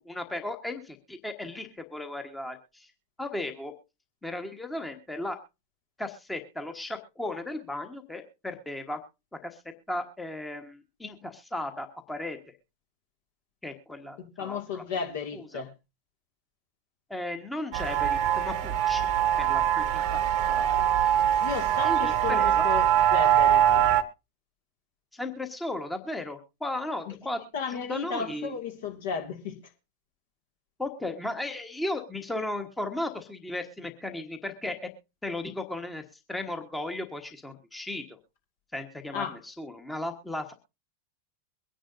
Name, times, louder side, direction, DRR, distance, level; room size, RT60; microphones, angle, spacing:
voice 1, 0.0-2.9 3.2-3.7 4.2-5.4 6.0-9.0 9.3-9.6 9.9-12.4 13.6-14.8 15.3-15.6 17.1-19.1 19.4-20.8 21.8-22.6 25.1-27.4 27.7-28.6 30.8-34.9 35.2-36.0 36.3-38.2 38.7-40.5, left 1 dB, 5° left, 1.3 m, -35 dB
voice 2, 14.2-15.7 21.4-23.9 27.1-27.2 27.5-29.6 39.1-39.4, left 6 dB, 55° left, 2.1 m, -34 dB
sound 1, 17.7-24.0, right 10 dB, 45° right, 1.0 m, -23 dB
23.0 x 10.0 x 2.6 m
figure-of-eight pair, 90°, 0 cm